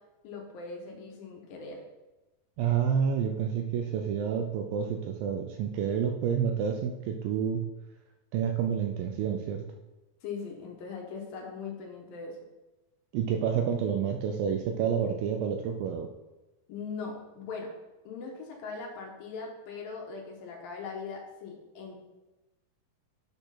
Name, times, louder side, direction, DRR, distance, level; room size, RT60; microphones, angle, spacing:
voice 1, 0.2-1.8 10.2-12.4 16.7-17.7 18.0-22.0, left 4 dB, 70° left, 0 dB, 2.7 m, -40 dB
voice 2, 2.6-7.7 8.3-9.7 13.1-16.1, right 7 dB, 80° right, 4 dB, 2.1 m, -29 dB
8.1 x 4.3 x 5.7 m, 1.1 s
omnidirectional pair, 4.5 m